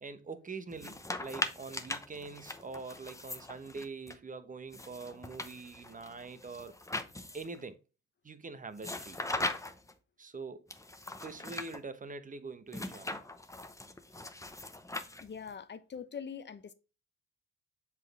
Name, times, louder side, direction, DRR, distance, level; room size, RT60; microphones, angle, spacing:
voice 1, 0.0-6.7 7.3-7.8 8.2-9.2 10.2-10.7 11.2-13.2, right 4 dB, 25° right, 1.0 m, -44 dB
sound 1, 0.7-4.1 4.7-7.6 8.8-9.9 10.7-11.8 12.7-15.5, left 2 dB, 10° left, 0.8 m, -40 dB
voice 2, 15.2-16.7, left 7 dB, 35° left, 0.9 m, -43 dB
7.5 x 4.0 x 3.4 m
cardioid pair, 90°, 30 cm